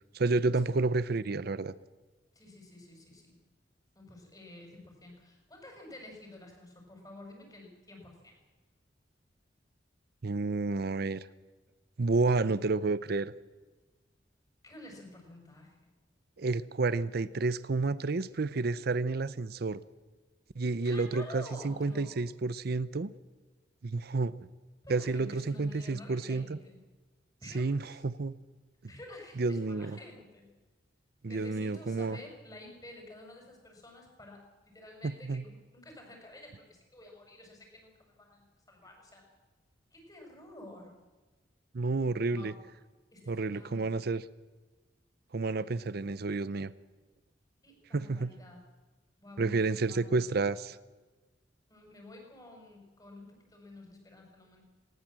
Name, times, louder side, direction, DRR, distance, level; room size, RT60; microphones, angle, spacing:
voice 1, 0.1-1.7 10.2-11.3 12.0-13.3 16.4-19.8 20.6-23.1 23.8-24.3 24.9-26.6 27.5-28.4 29.4-30.0 31.2-32.2 35.2-35.4 41.7-42.5 43.3-44.2 45.3-46.7 47.9-48.3 49.4-50.8, right 3 dB, 60° right, 16 dB, 0.6 m, -30 dB
voice 2, 2.3-3.4 4.0-8.4 14.6-16.0 20.8-22.2 24.8-26.8 27.4-28.1 28.9-30.5 31.3-39.3 39.9-41.0 42.3-42.6 43.1-43.9 47.6-48.7 49.2-50.4 51.7-54.6, left 2 dB, 20° left, 2 dB, 5.7 m, -50 dB
19.5 x 18.0 x 7.6 m, 1.3 s
head